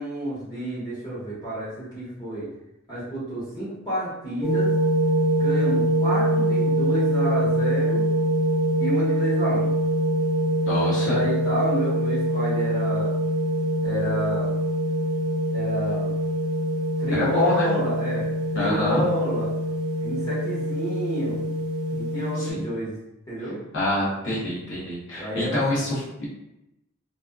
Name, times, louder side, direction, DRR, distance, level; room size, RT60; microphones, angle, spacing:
voice 1, 0.0-2.5 2.9-4.7 5.4-8.1 8.8-9.7 11.0-13.1 13.8-14.5 15.5-16.1 17.0-19.5 20.0-21.4 21.9-22.9 23.3-23.6 25.1-25.8, right 1 dB, 20° left, -10 dB, 1.2 m, -29 dB
sound 1, 4.4-22.5, equal, ahead, 0.9 m, -24 dB
voice 2, 10.6-11.2 17.1-17.7 18.5-19.1 22.4-22.6 23.7-26.3, left 1 dB, 60° left, -7 dB, 0.8 m, -26 dB
2.5 x 2.2 x 2.3 m, 0.89 s
head